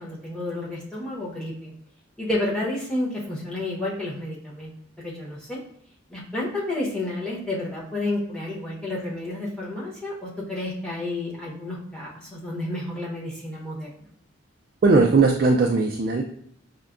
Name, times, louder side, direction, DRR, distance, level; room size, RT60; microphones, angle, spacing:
voice 1, 0.0-1.7 2.2-4.7 5.0-5.6 6.1-13.9, left 2 dB, 5° left, -6 dB, 0.9 m, -30 dB
voice 2, 14.8-16.2, right 3 dB, 45° right, 1 dB, 0.3 m, -18 dB
5.5 x 2.2 x 2.4 m, 0.67 s
head